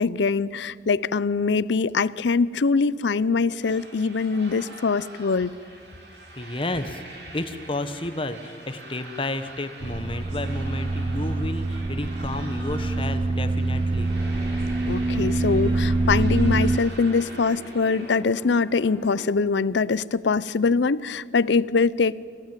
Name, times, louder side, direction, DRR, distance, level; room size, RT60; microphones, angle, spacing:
voice 1, 0.0-5.6 14.9-22.3, left 4 dB, 70° left, 20 dB, 0.5 m, -23 dB
sound 1, 3.6-18.1, right 2 dB, 60° right, 4.4 m, -45 dB
voice 2, 6.4-14.1, left 2 dB, 30° left, 10 dB, 1.1 m, -31 dB
sound 2, 9.8-16.8, right 2 dB, 30° right, 0.5 m, -25 dB
sound 3, 14.1-19.3, right 1 dB, 10° left, 3.8 m, -44 dB
25.5 x 16.5 x 9.1 m, 2.1 s
head